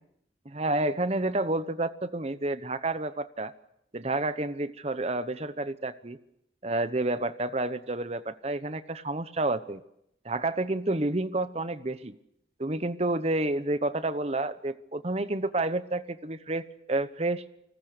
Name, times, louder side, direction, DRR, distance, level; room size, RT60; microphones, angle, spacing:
voice 1, 0.4-3.5 3.9-6.2 6.6-9.8 10.2-12.2 12.6-16.6 16.9-17.4, right 2 dB, 35° right, 13 dB, 1.0 m, -29 dB
30.0 x 20.0 x 6.7 m, 0.78 s
head